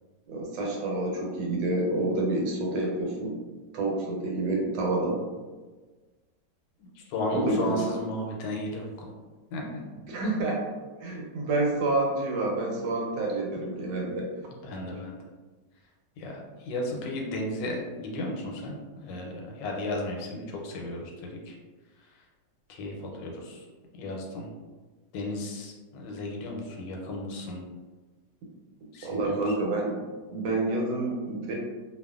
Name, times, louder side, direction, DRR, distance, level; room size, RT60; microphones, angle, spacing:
voice 1, 0.3-3.3 3.7-5.2 7.3-7.8 9.5-9.7 10.0-10.6 11.0-14.3 14.9-15.0 29.0-29.9 30.3-31.6, right 2 dB, 85° right, -1 dB, 1.3 m, -28 dB
voice 2, 6.8-9.1 9.5-9.6 14.6-15.2 16.2-18.8 19.0-21.6 22.7-23.7 23.9-24.5 25.1-27.6 28.9-29.5, left 1 dB, 80° left, 0 dB, 1.3 m, -34 dB
2.8 x 2.4 x 2.3 m, 1.3 s
omnidirectional pair, 1.9 m